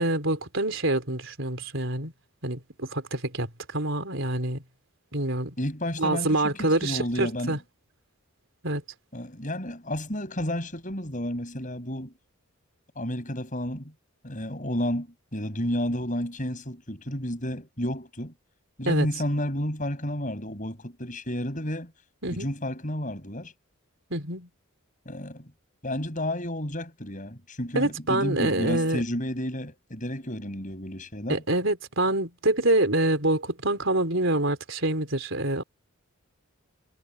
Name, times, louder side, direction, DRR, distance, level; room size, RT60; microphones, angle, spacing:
voice 1, 0.0-2.1 2.4-3.5 3.7-4.6 5.1-5.5 6.0-7.6 8.6-8.8 18.9-19.1 22.2-22.5 24.1-24.5 27.7-29.0 31.3-35.6, right 2 dB, 60° right, 4.4 m, -26 dB
voice 2, 5.6-7.6 9.1-12.1 13.0-13.9 14.2-15.1 15.3-18.3 18.8-21.9 22.3-23.5 25.1-25.5 25.8-31.4, equal, 35° left, 7.4 m, -31 dB
head